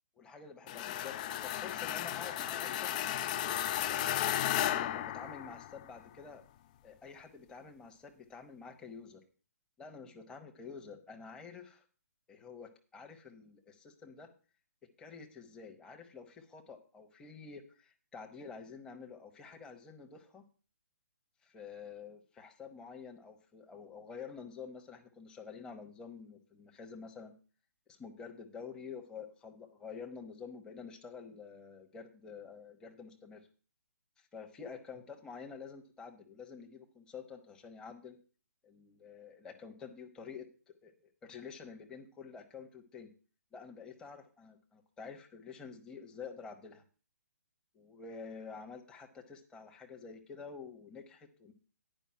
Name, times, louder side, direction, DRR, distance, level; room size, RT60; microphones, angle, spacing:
voice 1, 0.2-2.9 3.8-4.3 4.6-6.4 6.8-9.2 9.8-11.8 12.3-14.3 15.0-20.4 21.4-27.3 27.9-33.4 34.2-38.2 38.6-43.1 43.5-46.8 47.7-51.5, left 5 dB, 10° left, 2 dB, 1.1 m, -49 dB
sound 1, 0.7-5.9, left 12 dB, 30° left, 0.4 m, -34 dB
10.0 x 5.3 x 7.4 m, 0.38 s
figure-of-eight pair, 135°, 9 cm